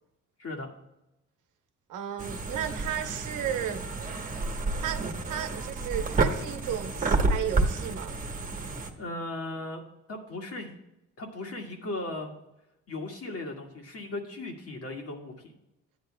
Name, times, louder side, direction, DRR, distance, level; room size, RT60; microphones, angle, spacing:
voice 1, 0.4-0.7 9.0-9.8 10.1-10.8 11.2-12.3 12.9-15.5, left 2 dB, 50° left, 1 dB, 1.9 m, -37 dB
voice 2, 1.9-3.8 4.8-8.1, right 9 dB, 80° right, 7 dB, 1.0 m, -34 dB
sound 1, 2.2-8.9, right 3 dB, 25° right, 1.2 m, -30 dB
12.5 x 9.3 x 2.3 m, 0.91 s
cardioid pair, 90°, 30 cm